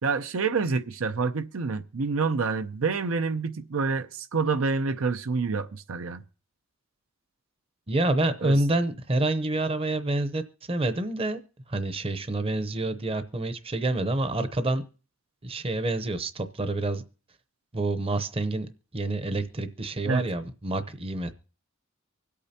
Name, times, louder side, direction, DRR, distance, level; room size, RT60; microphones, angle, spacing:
voice 1, 0.0-6.2 8.4-8.6 20.1-20.3, right 4 dB, 85° right, 0.6 m, -27 dB
voice 2, 7.9-11.4 11.7-14.8 15.4-17.0 17.7-18.7 18.9-21.3, right 2 dB, 30° right, 0.7 m, -27 dB
25.0 x 8.5 x 2.8 m
head